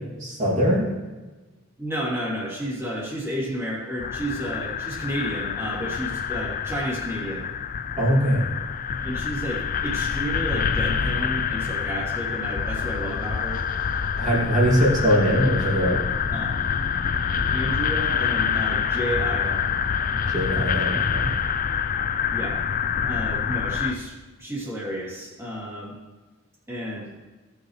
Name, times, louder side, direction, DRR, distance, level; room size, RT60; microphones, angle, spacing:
voice 1, 0.2-0.9 8.0-8.4 14.2-16.0 20.1-21.3, equal, 35° right, -5 dB, 2.6 m, -21 dB
voice 2, 1.8-7.5 9.0-13.6 16.3-16.6 17.5-19.7 22.3-22.6 23.0-25.9 26.7-27.1, equal, 10° right, -6 dB, 2.8 m, -31 dB
sound 1, 4.0-23.9, left 7 dB, 40° left, 0.4 m, -26 dB
17.0 x 6.4 x 3.2 m, 1.2 s
head